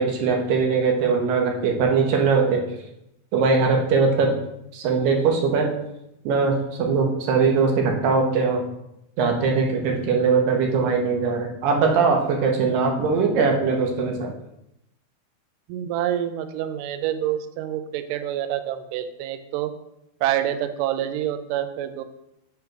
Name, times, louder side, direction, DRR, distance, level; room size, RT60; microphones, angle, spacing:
voice 1, 0.0-2.7 3.3-4.3 4.7-5.7 6.3-8.6 9.2-14.3, right 4 dB, 70° right, 2 dB, 2.6 m, -21 dB
voice 2, 15.7-19.7 20.2-22.0, right 11 dB, 90° right, 9 dB, 1.9 m, -27 dB
8.0 x 3.4 x 6.0 m, 0.82 s
omnidirectional pair, 4.4 m